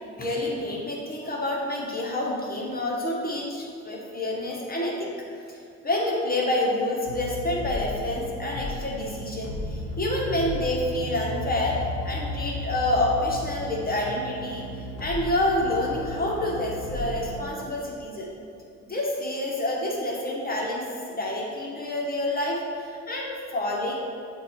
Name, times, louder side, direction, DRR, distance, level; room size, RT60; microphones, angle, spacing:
voice 1, 0.1-5.1 5.8-11.8 12.0-18.3 18.9-23.9, left 1 dB, 30° left, -3 dB, 1.4 m, -28 dB
sound 1, 7.1-17.4, left 1 dB, 65° left, 0.9 m, -34 dB
8.2 x 2.8 x 4.4 m, 2.4 s
cardioid pair, 90°, 30 cm